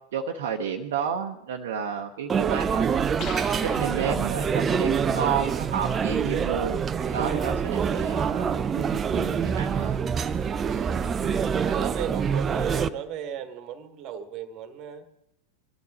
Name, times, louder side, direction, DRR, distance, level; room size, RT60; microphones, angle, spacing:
voice 1, 0.1-3.3 3.8-6.8 7.1-10.0 11.2-11.5, right 7 dB, 55° right, 2 dB, 0.9 m, -31 dB
sound 1, 2.3-12.9, right 6 dB, 20° right, 0.5 m, -26 dB
sound 2, 3.2-4.7, left 5 dB, 35° left, 1.4 m, -41 dB
voice 2, 5.3-5.7 7.0-7.3 10.6-11.2 11.6-15.0, right 8 dB, 40° right, 11 dB, 1.4 m, -36 dB
24.0 x 12.0 x 4.2 m, 0.82 s
figure-of-eight pair, 90°, 0 cm